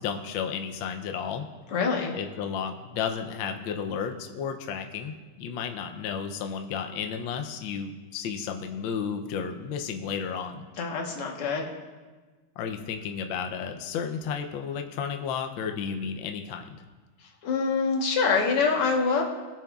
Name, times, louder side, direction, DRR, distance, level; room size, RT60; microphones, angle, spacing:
voice 1, 0.0-1.5 2.1-10.6 12.6-16.8, left 7 dB, 70° left, 5 dB, 1.3 m, -33 dB
voice 2, 1.7-2.1 10.8-11.7 17.2-19.2, left 4 dB, 90° left, 1 dB, 2.3 m, -25 dB
20.0 x 6.8 x 2.4 m, 1.3 s
omnidirectional pair, 2.4 m